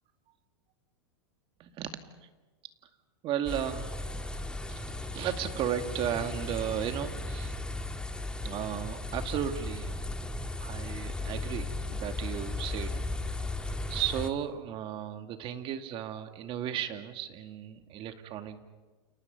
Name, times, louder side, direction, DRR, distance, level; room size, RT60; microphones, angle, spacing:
voice 1, 1.6-2.3 3.2-4.0 4.7-7.6 8.4-10.3 10.6-13.0 13.5-13.6 13.9-18.6, right 10 dB, 40° right, 7 dB, 2.3 m, -35 dB
sound 1, 3.5-14.3, left 2 dB, 5° left, 1.9 m, -36 dB
30.0 x 29.0 x 5.5 m, 1.2 s
hypercardioid pair, 115°, 14 cm